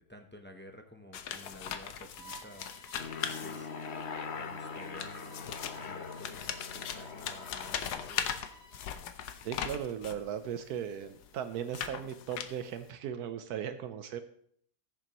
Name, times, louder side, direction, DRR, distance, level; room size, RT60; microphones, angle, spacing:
voice 1, 0.0-2.7 3.4-3.7 4.3-8.4, equal, 10° left, 3 dB, 0.5 m, -52 dB
sound 1, 1.1-4.0 4.8-10.3 10.9-12.9, left 8 dB, 90° left, 1.3 m, -39 dB
Bowed string instrument, 2.1-9.1, right 3 dB, 20° right, 5.5 m, -56 dB
Aircraft, 3.0-8.1, left 5 dB, 50° left, 1.0 m, -42 dB
voice 2, 9.4-14.2, right 9 dB, 80° right, 10 dB, 1.1 m, -37 dB
19.0 x 6.9 x 3.0 m, 0.64 s
omnidirectional pair, 1.7 m